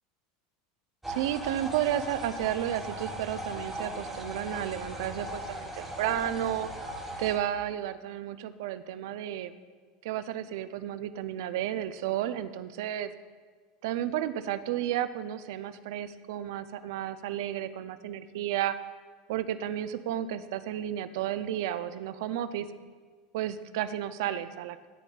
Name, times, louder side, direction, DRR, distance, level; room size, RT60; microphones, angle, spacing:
sound 1, 1.0-7.4, right 1 dB, 5° right, 0.8 m, -38 dB
voice 1, 1.1-6.7 7.2-9.5 10.0-13.1 13.8-18.8 19.3-22.7 23.3-24.9, right 11 dB, 75° right, 12 dB, 0.3 m, -32 dB
11.5 x 4.0 x 2.3 m, 1.5 s
supercardioid pair, 135°, 2 cm